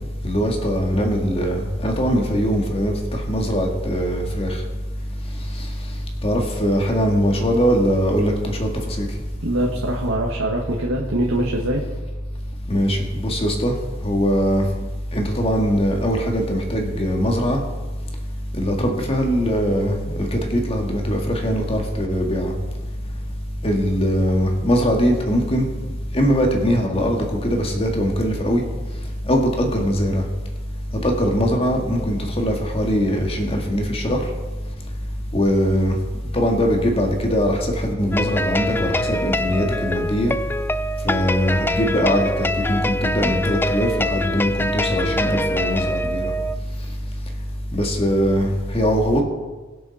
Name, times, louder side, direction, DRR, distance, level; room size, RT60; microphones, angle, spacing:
voice 1, 0.2-4.6 5.6-5.7 6.2-9.1 12.7-13.8 14.0-14.6 15.1-17.6 18.5-22.5 23.6-25.7 26.1-28.6 29.3-30.2 31.0-34.2 35.3-36.0 36.3-40.3 41.0-46.3 47.7-49.2, equal, 30° left, 1 dB, 2.1 m, -21 dB
voice 2, 9.4-11.8, right 1 dB, 85° right, -2 dB, 1.7 m, -23 dB
sound 1, 38.1-46.6, left 1 dB, 10° left, 0.4 m, -24 dB
23.0 x 7.7 x 4.2 m, 1.3 s
head